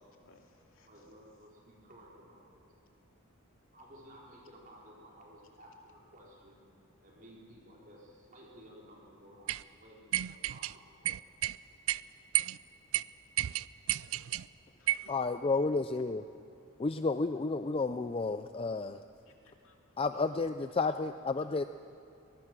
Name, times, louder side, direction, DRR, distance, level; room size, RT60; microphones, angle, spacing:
voice 1, 0.0-1.1 14.8-15.1 19.3-19.8 20.9-21.0, left 3 dB, 65° left, 2 dB, 2.5 m, -64 dB
voice 2, 0.8-2.7 3.7-6.6 7.0-11.1, equal, 40° right, -2 dB, 4.3 m, -55 dB
sound 1, 9.5-9.6 10.1-10.7 11.0-11.6 11.9-12.0 12.3-12.6 12.9-13.0 13.4-14.4 14.9-15.1, right 14 dB, 70° right, 0.4 m, -31 dB
voice 3, 15.1-16.2 16.8-19.0 20.0-21.6, left 3 dB, 25° left, 10 dB, 0.4 m, -31 dB
24.0 x 19.5 x 6.1 m, 2.8 s
head